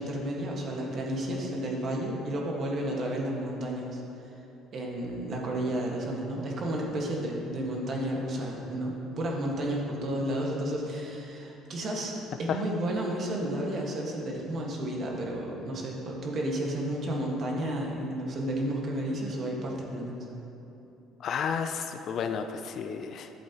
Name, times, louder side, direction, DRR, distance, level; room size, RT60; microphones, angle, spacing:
voice 1, 0.0-4.0 4.7-20.2, right 1 dB, 45° right, -1 dB, 1.6 m, -32 dB
voice 2, 21.2-23.3, left 6 dB, 55° left, 7 dB, 0.5 m, -32 dB
11.5 x 7.7 x 3.0 m, 2.9 s
cardioid pair, 100°, 0 cm